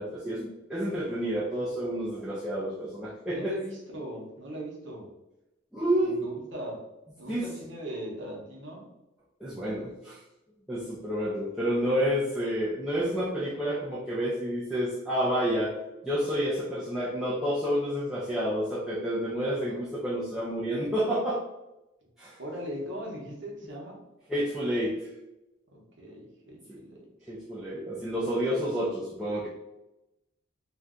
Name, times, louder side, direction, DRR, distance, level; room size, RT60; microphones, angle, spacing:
voice 1, 0.0-3.6 5.7-6.3 7.3-7.5 9.4-10.2 10.7-15.7 16.0-21.4 22.2-22.4 24.3-25.1 26.7-26.8 27.3-29.5, equal, 5° right, -8 dB, 0.3 m, -29 dB
voice 2, 3.3-5.1 6.0-6.8 7.2-8.9 19.4-19.8 22.4-24.0 25.7-27.1, right 1 dB, 60° right, -2 dB, 0.8 m, -39 dB
2.5 x 2.2 x 3.6 m, 0.96 s
head